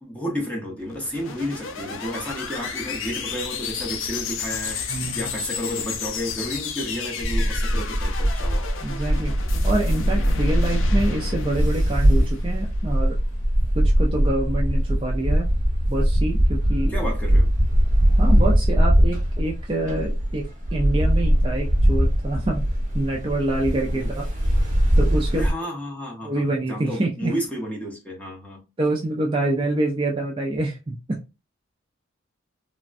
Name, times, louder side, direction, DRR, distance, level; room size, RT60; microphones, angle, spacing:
voice 1, 0.0-8.7 16.9-17.5 25.3-28.6, equal, 5° left, 0.8 m, -32 dB
sound 1, 0.8-13.1, left 3 dB, 65° left, 0.5 m, -30 dB
voice 2, 4.9-5.3 8.8-9.3 9.6-13.2 13.7-15.5 15.9-16.9 18.2-22.7 22.9-24.3 25.0-25.5 26.2-27.3 28.8-31.2, right 2 dB, 25° right, 0.4 m, -26 dB
sound 2, 7.2-25.5, equal, 40° right, 0.9 m, -21 dB
3.3 x 2.1 x 2.5 m
head